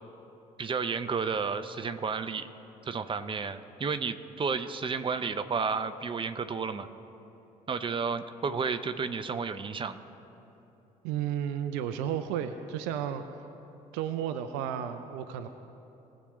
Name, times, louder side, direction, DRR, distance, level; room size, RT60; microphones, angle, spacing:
voice 1, 0.6-2.5 2.8-6.9 7.7-10.0, right 5 dB, 25° right, 9 dB, 0.7 m, -32 dB
voice 2, 11.0-13.2 13.9-15.5, right 9 dB, 65° right, 9 dB, 0.6 m, -32 dB
20.0 x 7.4 x 3.1 m, 3.0 s
figure-of-eight pair, 45°, 19 cm